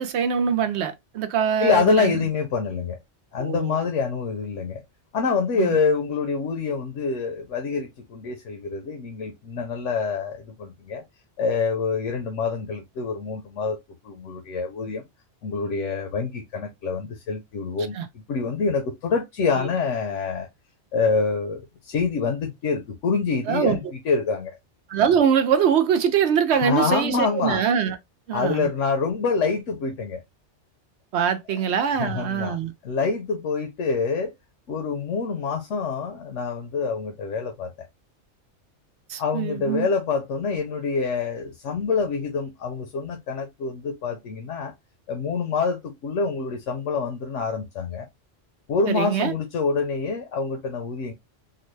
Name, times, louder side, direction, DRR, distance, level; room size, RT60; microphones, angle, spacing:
voice 1, 0.0-2.1 3.4-3.8 5.6-5.7 18.0-18.1 19.6-19.7 23.5-23.8 24.9-28.0 28.3-28.7 31.1-32.7 39.1-39.9 48.9-49.3, right 8 dB, 70° right, 0.8 m, -23 dB
voice 2, 1.6-3.0 3.3-4.8 5.1-11.0 11.4-13.8 14.0-15.0 15.4-18.0 18.3-20.5 20.9-24.6 26.5-27.6 28.3-30.2 31.5-34.3 34.7-37.9 39.2-44.7 45.1-48.1 48.7-51.1, left 4 dB, 90° left, 1.1 m, -26 dB
3.8 x 2.1 x 3.1 m
omnidirectional pair, 1.2 m